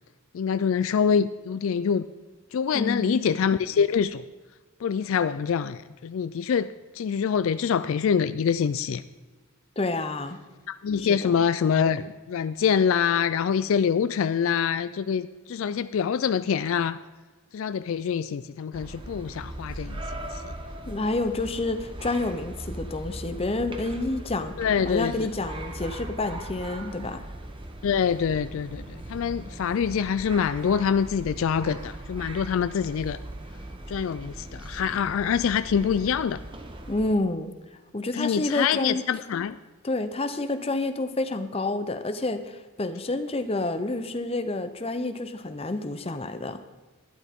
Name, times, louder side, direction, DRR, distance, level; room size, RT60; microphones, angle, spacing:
voice 1, 0.3-2.1 2.5-4.2 4.8-6.7 6.9-9.0 10.7-17.0 17.5-20.4 24.6-25.3 27.8-33.2 33.9-36.4 38.1-39.5, left 7 dB, 65° left, 13 dB, 0.3 m, -25 dB
voice 2, 2.7-3.2 9.8-10.4 11.0-11.3 20.9-24.5 24.9-27.2 36.9-37.5 37.9-39.0 39.8-46.6, left 2 dB, 25° left, 9 dB, 0.6 m, -29 dB
sound 1, 18.7-37.1, right 1 dB, 20° right, 0.8 m, -39 dB
12.0 x 11.5 x 3.6 m, 1.3 s
head